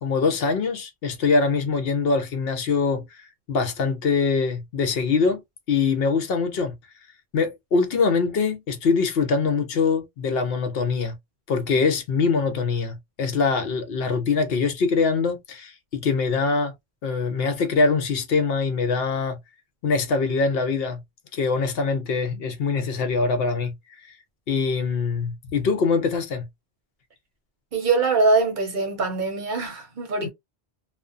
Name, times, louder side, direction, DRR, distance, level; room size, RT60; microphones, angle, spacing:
voice 1, 0.0-3.0 3.5-5.4 5.7-6.7 7.3-11.1 11.5-16.7 17.0-19.4 19.8-21.0 21.3-23.7 24.0-24.1 24.5-26.5 30.2-30.3, left 4 dB, 70° left, 0.8 m, -23 dB
voice 2, 27.7-30.3, right 3 dB, 55° right, 0.8 m, -23 dB
2.4 x 2.1 x 2.4 m
omnidirectional pair, 1.1 m